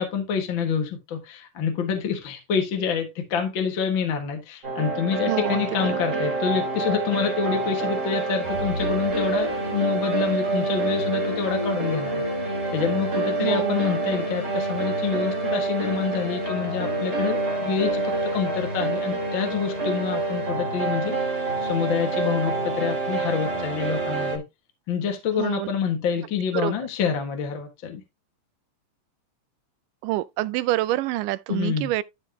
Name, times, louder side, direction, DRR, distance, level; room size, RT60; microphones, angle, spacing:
voice 1, 0.0-12.2 12.7-21.2 21.6-24.4 24.9-28.0 31.5-31.9, left 6 dB, 45° left, 1.9 m, -27 dB
sound 1, 4.6-24.4, right 3 dB, 25° right, 2.6 m, -27 dB
voice 2, 5.3-6.0 13.4-13.9 25.4-25.7 26.5-26.7 30.0-32.0, right 15 dB, 85° right, 2.2 m, -27 dB
sound 2, 5.8-18.6, left 2 dB, 25° left, 0.8 m, -39 dB
13.0 x 4.6 x 2.8 m
omnidirectional pair, 3.7 m